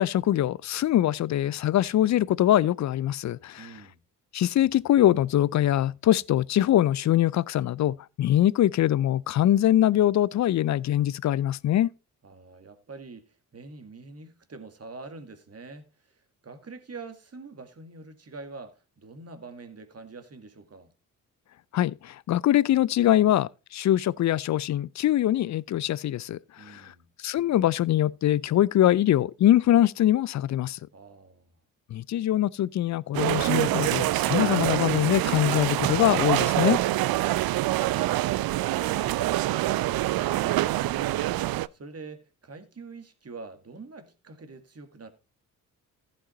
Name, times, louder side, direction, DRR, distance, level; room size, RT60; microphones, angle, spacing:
voice 1, 0.0-3.7 4.3-11.9 21.7-26.9 27.2-30.8 31.9-36.8, left 12 dB, 40° left, 0.5 m, -23 dB
voice 2, 3.6-4.0 12.2-20.9 26.6-27.1 30.9-31.5 41.7-45.1, right 3 dB, 35° right, 2.0 m, -45 dB
sound 1, 33.1-41.7, right 16 dB, 55° right, 0.6 m, -25 dB
15.0 x 5.5 x 4.2 m
hypercardioid pair, 45°, 43 cm